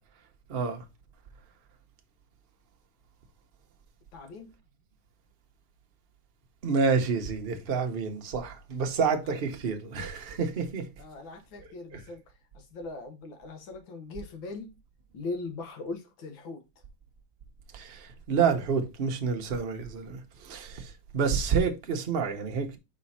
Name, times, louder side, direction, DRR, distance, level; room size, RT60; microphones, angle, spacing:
voice 1, 0.5-0.8 6.6-10.8 11.9-12.0 17.7-22.8, right 5 dB, 45° right, 0.7 m, -29 dB
voice 2, 4.1-4.5 9.2-9.3 11.0-12.2 12.5-14.7 15.1-16.6, left 3 dB, 75° left, 1.9 m, -40 dB
5.1 x 4.4 x 4.1 m
omnidirectional pair, 2.2 m